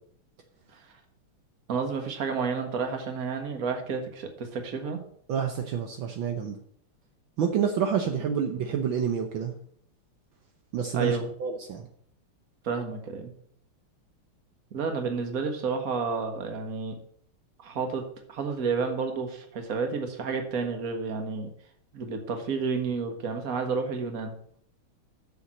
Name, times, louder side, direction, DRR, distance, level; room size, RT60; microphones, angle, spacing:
voice 1, 1.7-5.0 10.9-11.3 12.6-13.3 14.7-17.0 17.6-21.5 21.9-24.3, right 5 dB, 45° right, 5 dB, 1.7 m, -30 dB
voice 2, 5.3-6.6 7.4-9.5 10.7-11.9, right 7 dB, 70° right, 4 dB, 1.6 m, -28 dB
7.2 x 7.0 x 7.5 m, 0.63 s
omnidirectional pair, 2.4 m